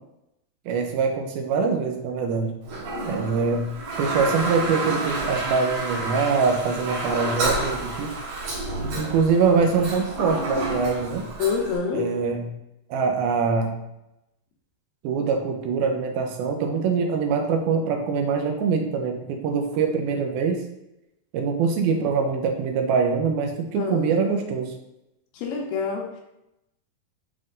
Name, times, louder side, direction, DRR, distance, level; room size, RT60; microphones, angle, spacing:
voice 1, 0.7-2.6 3.1-8.2 9.0-11.3 11.9-12.5 12.9-13.8 15.0-20.6 21.3-24.7, right 5 dB, 85° right, 4 dB, 2.6 m, -24 dB
Toilet flush, 2.6-11.8, right 2 dB, 60° right, 3.3 m, -30 dB
voice 2, 11.4-12.1 23.8-24.1 25.3-26.2, left 5 dB, 75° left, 0 dB, 2.4 m, -27 dB
9.7 x 3.8 x 2.6 m, 0.86 s
omnidirectional pair, 4.3 m